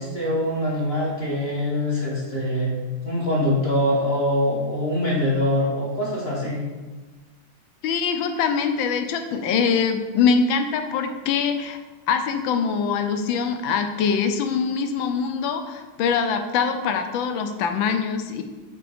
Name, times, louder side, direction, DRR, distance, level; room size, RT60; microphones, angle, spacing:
voice 1, 0.0-2.7 3.0-6.6, left 1 dB, 30° left, -6 dB, 1.7 m, -23 dB
voice 2, 7.8-11.8 12.1-18.4, left 6 dB, 75° left, 7 dB, 1.3 m, -23 dB
5.9 x 4.9 x 5.0 m, 1.3 s
omnidirectional pair, 2.3 m